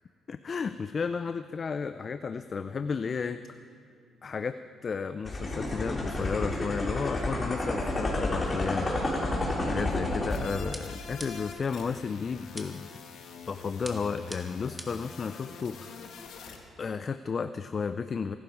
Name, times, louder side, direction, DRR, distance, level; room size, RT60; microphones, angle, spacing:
voice 1, 0.3-3.4 4.2-4.6 4.8-8.9 9.7-13.0 13.5-16.3 16.8-18.4, left 5 dB, 40° left, 11 dB, 0.5 m, -33 dB
sound 1, 5.2-10.4, left 1 dB, 25° left, 3.5 m, -30 dB
sound 2, 10.3-16.6, left 6 dB, 75° left, 1.9 m, -45 dB
sound 3, 10.7-11.6 12.6-13.0 13.8-15.1, right 1 dB, 10° right, 1.8 m, -44 dB
24.5 x 12.0 x 4.7 m, 2.4 s
cardioid pair, 90°, 0 cm